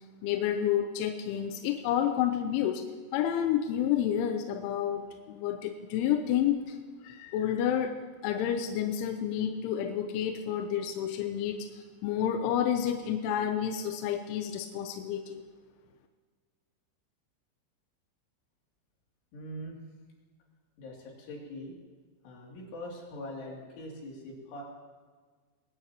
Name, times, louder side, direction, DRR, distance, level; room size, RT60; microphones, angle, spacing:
voice 1, 0.2-2.8 3.1-6.8 7.0-8.0 8.2-15.5, left 9 dB, 80° left, 5 dB, 3.0 m, -30 dB
voice 2, 19.3-19.8 20.8-21.7 22.2-24.6, left 1 dB, 65° left, -3 dB, 5.2 m, -42 dB
21.5 x 17.5 x 3.0 m, 1.5 s
omnidirectional pair, 6.0 m